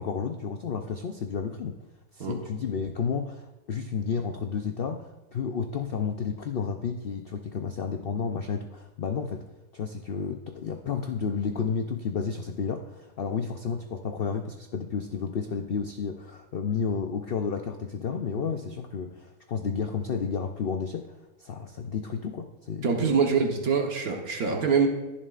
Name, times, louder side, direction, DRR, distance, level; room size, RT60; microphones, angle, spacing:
voice 1, 0.0-1.8 2.1-9.4 9.7-23.2, left 6 dB, 75° left, 6 dB, 0.5 m, -31 dB
voice 2, 22.8-24.9, right 5 dB, 65° right, 3 dB, 1.5 m, -24 dB
21.0 x 7.2 x 2.4 m, 1.0 s
omnidirectional pair, 1.7 m